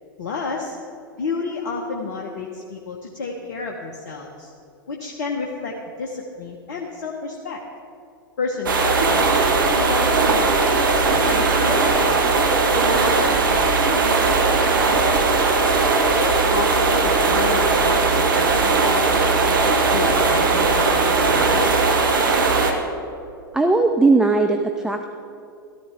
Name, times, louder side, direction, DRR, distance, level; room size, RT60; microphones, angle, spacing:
voice 1, 0.2-0.8 1.2-4.5 4.9-7.6 8.4-9.3 9.7-10.5 10.9-12.2 12.7-15.4 16.0-21.9, left 4 dB, 55° left, 0 dB, 1.1 m, -31 dB
sound 1, 8.7-22.7, right 3 dB, 65° right, 1.3 m, -18 dB
voice 2, 23.5-25.1, right 3 dB, 5° right, 5 dB, 0.5 m, -18 dB
13.0 x 13.0 x 3.5 m, 2.5 s
figure-of-eight pair, 95°, 12 cm